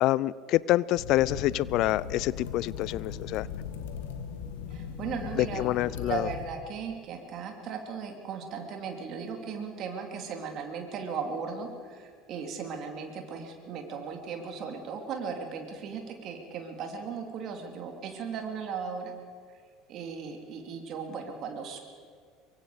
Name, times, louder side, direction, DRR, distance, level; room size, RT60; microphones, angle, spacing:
voice 1, 0.0-3.5 5.4-6.3, left 15 dB, 55° left, 22 dB, 0.4 m, -26 dB
sound 1, 1.0-6.5, left 7 dB, 70° left, 2.1 m, -38 dB
voice 2, 4.7-19.1 19.9-21.8, right 6 dB, 50° right, 3 dB, 3.2 m, -37 dB
24.0 x 23.5 x 5.1 m, 2.1 s
figure-of-eight pair, 70°, 0 cm